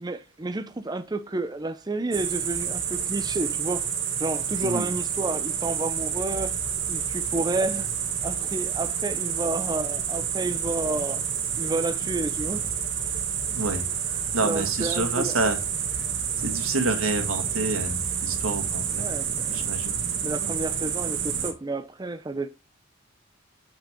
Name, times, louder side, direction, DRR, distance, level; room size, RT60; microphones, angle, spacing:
voice 1, 0.0-3.9 4.2-6.6 6.9-7.9 8.2-11.2 11.6-12.7 14.2-15.4 18.9-19.7 20.2-22.5, right 2 dB, 20° right, 0.6 m, -31 dB
sound 1, 2.1-21.5, right 7 dB, 65° right, 1.6 m, -29 dB
voice 2, 13.5-13.8 14.3-15.6 16.4-19.1 19.5-20.0 20.4-20.5, right 2 dB, 90° right, 1.8 m, -28 dB
7.5 x 5.8 x 3.6 m
head